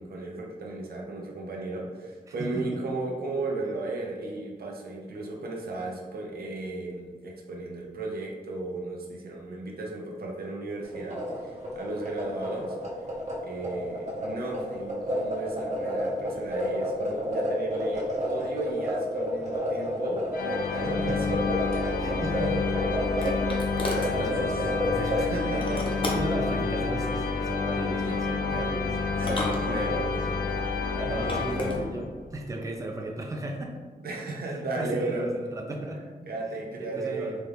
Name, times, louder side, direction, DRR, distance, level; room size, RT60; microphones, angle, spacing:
voice 1, 0.0-12.8 13.4-20.2 20.7-21.5 24.2-24.6 25.2-25.9 28.5-28.6 29.1-30.3 34.0-35.3 36.2-37.3, right 2 dB, 85° right, -1 dB, 0.6 m, -35 dB
voice 2, 2.3-2.8 20.7-21.2 22.0-22.6 23.2-23.4 23.9-25.2 25.5-25.7 26.0-30.2 30.7-33.7 34.5-36.0 36.7-37.4, right 1 dB, 20° right, 1 dB, 0.5 m, -35 dB
sound 1, 10.9-25.2, equal, 50° right, 1.0 m, -31 dB
sound 2, 20.3-32.3, left 4 dB, 70° left, 0.4 m, -29 dB
sound 3, 22.4-24.2 25.6-26.4 27.8-28.2 29.1-30.2 31.0-31.8, left 1 dB, 35° left, 0.7 m, -34 dB
4.1 x 2.3 x 3.4 m, 1.5 s
wide cardioid pair, 95°, 15 cm